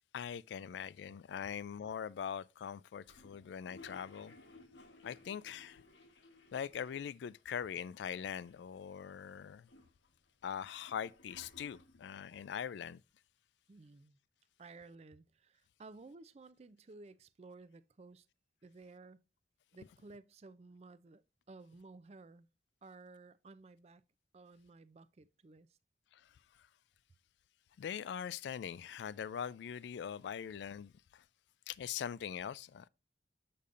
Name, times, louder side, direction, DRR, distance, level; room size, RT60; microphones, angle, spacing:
voice 1, 0.1-4.3 5.0-5.8 6.5-9.7 10.4-13.0 26.1-26.2 27.8-31.2 31.7-32.9, left 8 dB, 70° left, 0.3 m, -42 dB
Toilet flush, 3.0-7.4 7.7-7.8 8.0-8.8 9.3-12.2, left 3 dB, 90° left, 1.3 m, -60 dB
voice 2, 13.7-14.2 14.6-18.3 18.6-19.2 19.7-21.2 21.5-22.5 22.8-24.0 24.3-25.8, right 3 dB, 35° right, 0.4 m, -55 dB
6.8 x 6.6 x 2.4 m
head